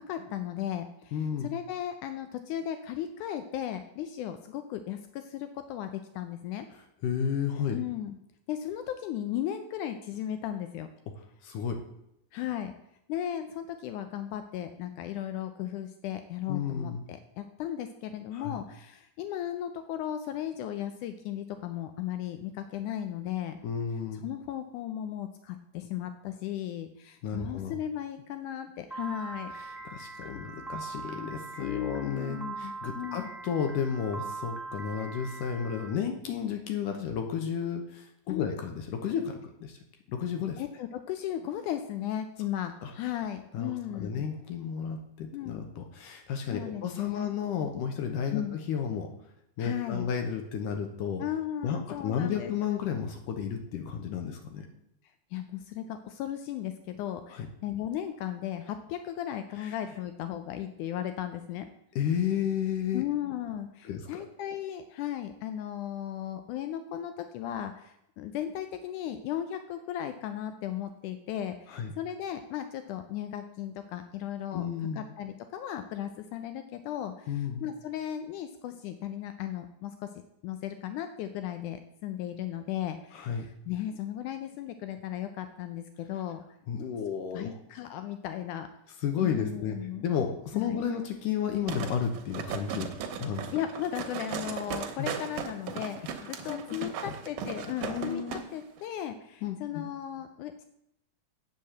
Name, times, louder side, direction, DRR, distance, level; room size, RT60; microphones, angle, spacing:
voice 1, 0.0-6.7 7.7-8.2 8.5-10.9 12.3-12.7 13.1-23.6 24.2-29.5 31.6-33.3 38.3-38.5 40.6-44.2 45.3-45.6 46.5-47.3 48.3-48.6 49.6-50.1 51.2-52.5 55.3-61.7 62.9-74.7 75.0-80.1 80.4-86.4 87.3-88.7 89.2-90.0 90.5-90.8 93.5-100.7, left 11 dB, 90° left, 9 dB, 1.7 m, -36 dB
voice 2, 1.1-1.5 7.0-7.8 11.4-11.9 16.5-17.0 18.3-18.6 23.6-24.3 27.2-27.8 29.5-39.8 40.1-40.6 42.8-42.9 43.5-43.7 44.0-49.1 49.6-51.2 51.6-54.7 57.3-57.5 59.6-59.7 62.0-63.1 63.8-64.2 71.7-71.9 74.5-75.0 77.3-77.6 83.1-83.4 86.7-87.6 89.0-89.8 90.0-93.5 95.0-95.1 96.5-97.1 97.8-98.4 99.4-99.8, left 7 dB, 70° left, 5 dB, 2.2 m, -32 dB
Piano, 28.9-35.9, right 3 dB, ahead, 0.4 m, -41 dB
sound 1, 91.7-98.4 98.8-98.9, right 7 dB, 70° right, 2.4 m, -37 dB
8.4 x 6.7 x 7.4 m, 0.78 s
omnidirectional pair, 4.4 m